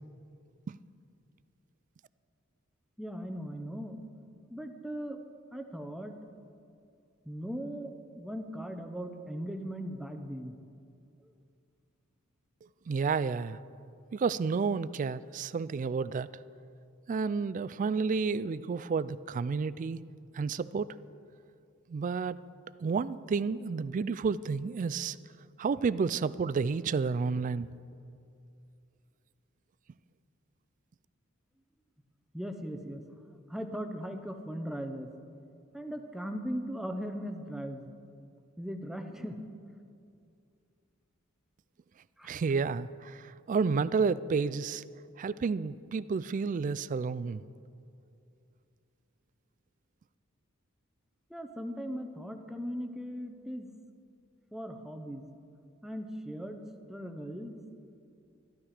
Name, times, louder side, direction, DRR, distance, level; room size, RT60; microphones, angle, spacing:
voice 1, 3.0-4.0 4.5-5.2 5.5-6.2 7.3-10.6 11.2-11.3 32.3-33.0 33.5-35.1 35.7-37.9 38.6-39.4 42.2-42.3 51.3-53.7 54.5-55.3 55.8-57.6, equal, ahead, 6 dB, 0.7 m, -38 dB
voice 2, 12.9-13.6 14.1-16.3 17.1-20.1 20.3-20.9 21.9-22.4 22.8-25.2 25.6-27.7 42.2-44.8 45.2-47.4, right 5 dB, 40° right, 17 dB, 0.3 m, -31 dB
13.5 x 12.5 x 5.0 m, 2.5 s
head